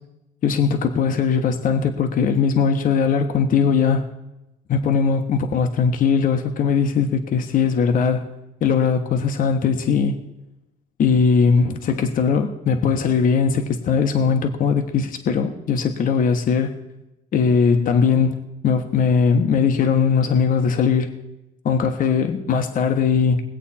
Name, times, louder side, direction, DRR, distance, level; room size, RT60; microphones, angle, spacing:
voice 1, 0.4-4.1 4.7-8.3 8.6-10.2 11.0-16.8 17.3-21.1 21.6-23.4, left 6 dB, 55° left, 5 dB, 1.3 m, -19 dB
21.0 x 8.2 x 4.3 m, 0.92 s
cardioid pair, 110°, 17 cm